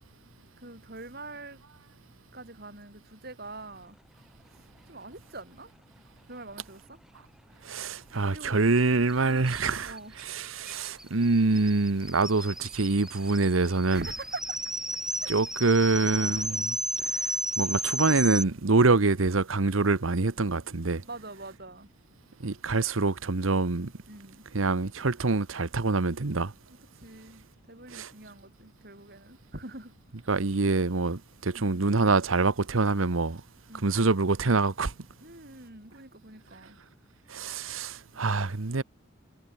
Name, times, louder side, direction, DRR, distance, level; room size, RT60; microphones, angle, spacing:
voice 1, 0.6-1.6 2.3-4.0 4.5-5.7 6.2-7.0 8.3-8.6 9.1-9.6 9.8-10.2 13.9-14.6 14.9-15.3 16.1-16.7 21.0-21.9 24.1-24.4 26.9-29.9 31.5-31.9 33.7-34.0 35.2-36.8, right 2 dB, 50° right, 7.4 m, -44 dB
voice 2, 7.6-9.9 10.2-14.0 15.3-16.8 17.6-21.0 22.4-23.9 24.5-26.5 27.9-28.1 30.3-33.4 33.8-34.9 37.3-38.8, right 3 dB, 85° right, 1.1 m, -25 dB
sound 1, 8.8-8.9 9.1-9.2 9.5-18.4, right 1 dB, 5° right, 0.5 m, -34 dB
head